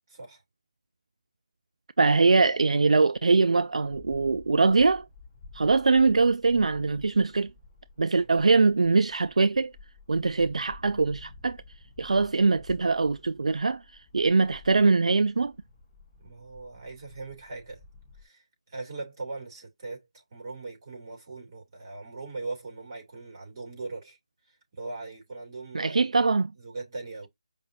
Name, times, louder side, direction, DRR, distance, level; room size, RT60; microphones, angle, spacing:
voice 1, 0.1-0.4 16.2-17.8 18.2-24.2 24.5-26.1 26.6-27.3, right 3 dB, 30° right, 2.8 m, -40 dB
voice 2, 2.0-5.1 5.5-7.5 8.0-9.7 10.1-11.6 12.0-15.5 25.7-26.5, right 4 dB, 70° right, 0.4 m, -22 dB
sound 1, 3.2-18.2, left 3 dB, 10° left, 0.8 m, -52 dB
5.3 x 2.4 x 2.7 m
figure-of-eight pair, 170°, 4 cm